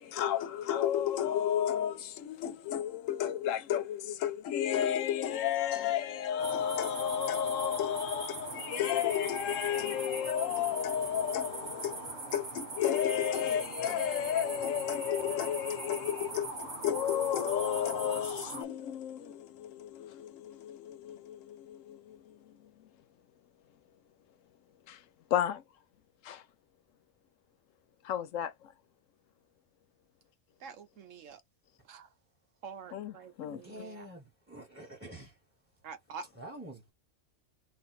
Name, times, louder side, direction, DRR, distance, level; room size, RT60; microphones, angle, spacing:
voice 1, 0.0-22.7 24.9-25.0 25.3-25.6 26.2-26.4 28.0-28.7 32.9-33.6, left 10 dB, 85° left, 1.0 m, -32 dB
sound 1, 6.4-18.6, right 2 dB, 60° right, 1.5 m, -41 dB
voice 2, 30.6-31.4 31.9-32.1 32.6-34.1 35.8-36.2, right 5 dB, 80° right, 1.2 m, -47 dB
voice 3, 33.5-35.4 36.4-36.9, right 1 dB, 10° right, 1.4 m, -47 dB
4.7 x 2.6 x 4.2 m
omnidirectional pair, 1.3 m